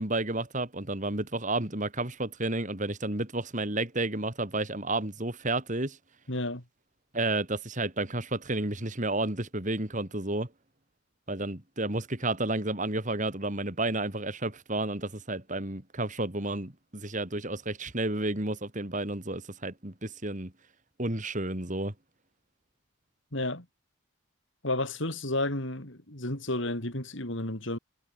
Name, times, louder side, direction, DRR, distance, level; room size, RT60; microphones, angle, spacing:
voice 1, 0.0-6.0 7.1-10.5 11.3-20.5 21.0-21.9, right 2 dB, 35° right, 2.7 m, -31 dB
voice 2, 6.3-6.6 23.3-23.6 24.6-27.8, left 1 dB, 60° left, 4.6 m, -32 dB
head